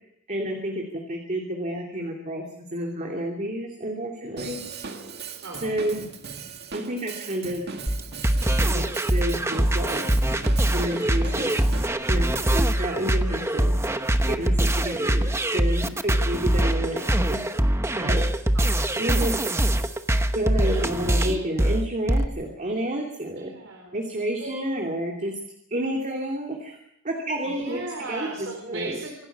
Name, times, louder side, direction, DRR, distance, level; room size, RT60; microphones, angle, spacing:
voice 1, 0.3-4.6 5.6-6.0 6.7-7.8 8.5-10.1 10.6-11.5 12.1-13.7 14.3-17.4 17.9-18.2 19.0-19.3 20.3-23.5 23.9-25.3 25.7-26.8 27.0-27.8 28.1-29.0, right 1 dB, 40° right, 1 dB, 2.8 m, -30 dB
Drum kit / Drum, 4.4-11.9, right 5 dB, 55° right, 2.0 m, -38 dB
voice 2, 5.4-5.8 18.5-19.3 20.6-21.4 23.3-23.9 24.4-24.6 27.4-29.3, right 2 dB, 75° right, 1 dB, 4.3 m, -37 dB
sound 1, 7.9-22.3, right 1 dB, 15° right, 1.0 m, -23 dB
26.0 x 12.5 x 8.2 m, 0.79 s
head